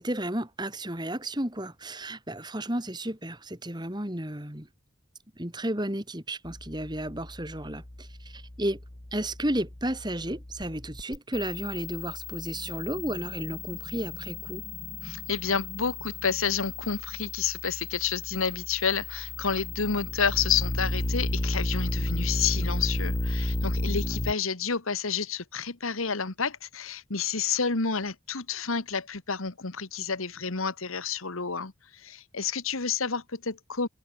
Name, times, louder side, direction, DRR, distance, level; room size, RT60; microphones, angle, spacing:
voice 1, 0.0-4.7 5.4-8.8 9.1-14.6, right 1 dB, 20° right, 3.0 m, -33 dB
sound 1, 6.4-24.3, left 2 dB, 35° left, 1.6 m, -34 dB
voice 2, 15.0-33.9, left 6 dB, 80° left, 1.7 m, -30 dB
head